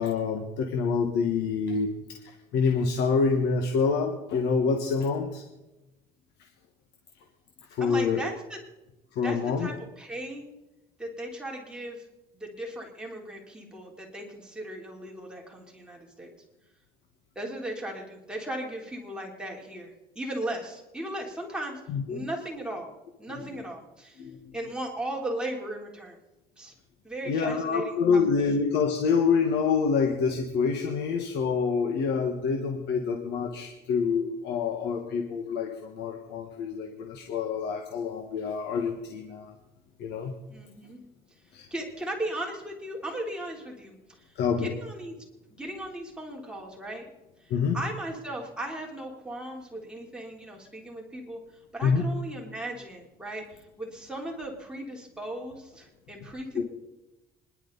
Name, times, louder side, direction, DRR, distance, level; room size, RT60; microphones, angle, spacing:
voice 1, 0.0-5.4 7.8-8.2 9.1-9.7 21.9-22.3 23.4-23.5 24.2-24.4 27.3-39.5 40.0-40.3 41.5-41.7 44.4-44.7 47.5-47.8 51.8-52.0 56.6-56.7, left 5 dB, 80° left, 3 dB, 1.6 m, -27 dB
voice 2, 7.8-8.6 9.2-10.5 11.0-12.0 12.3-16.3 17.4-21.8 22.1-22.9 23.2-24.2 24.5-26.2 26.6-26.7 27.0-28.4 40.5-41.0 41.7-45.1 45.5-47.1 47.4-51.4 51.7-56.6, right 1 dB, 5° right, -2 dB, 3.6 m, -37 dB
26.5 x 11.5 x 4.1 m, 1.0 s
cardioid pair, 110°, 17 cm